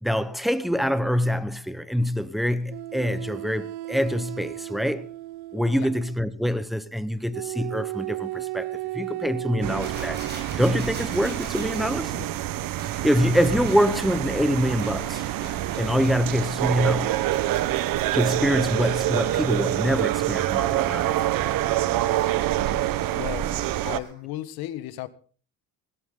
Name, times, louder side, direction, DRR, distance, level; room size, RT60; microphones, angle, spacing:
voice 1, 0.0-5.1 5.5-10.2 10.5-12.1 13.0-15.2 15.8-17.2 18.1-21.2, equal, ahead, 0.9 m, -25 dB
sound 1, 2.7-6.2 7.3-10.4 11.5-11.9, right 17 dB, 85° right, 1.0 m, -35 dB
sound 2, 9.6-24.0, right 14 dB, 65° right, 1.1 m, -26 dB
sound 3, 9.8-16.2 16.6-20.2 20.8-24.2, right 2 dB, 25° right, 7.7 m, -44 dB
voice 2, 23.1-23.6 23.8-25.1, left 14 dB, 85° left, 1.6 m, -34 dB
18.0 x 17.5 x 3.8 m
cardioid pair, 155°, 36 cm